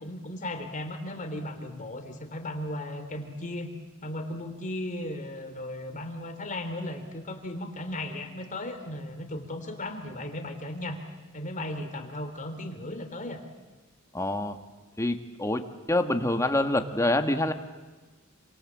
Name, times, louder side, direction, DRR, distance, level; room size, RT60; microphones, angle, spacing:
voice 1, 0.0-3.7 4.0-11.0 11.3-13.4, left 1 dB, 35° left, 6 dB, 3.1 m, -36 dB
voice 2, 14.1-14.6 15.0-17.5, left 1 dB, 15° left, 6 dB, 1.7 m, -26 dB
28.0 x 26.0 x 7.5 m, 1.3 s
head